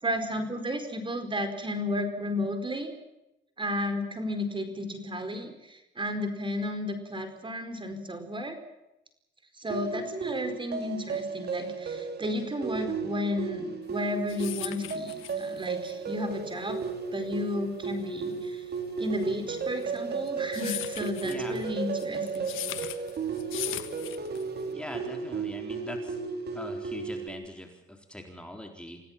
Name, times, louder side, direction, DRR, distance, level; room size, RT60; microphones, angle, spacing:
voice 1, 0.0-2.9 3.6-8.6 9.6-16.8 17.1-18.6 19.0-22.6, left 1 dB, 25° right, 8 dB, 4.7 m, -33 dB
sound 1, 9.7-27.3, right 5 dB, 55° right, 3.9 m, -34 dB
sound 2, 13.9-24.7, left 14 dB, 90° left, 1.4 m, -40 dB
voice 2, 21.2-21.6 24.7-26.2 26.5-29.0, left 1 dB, 5° left, 3 dB, 4.0 m, -42 dB
27.0 x 17.0 x 7.4 m, 0.90 s
cardioid pair, 90°, 20 cm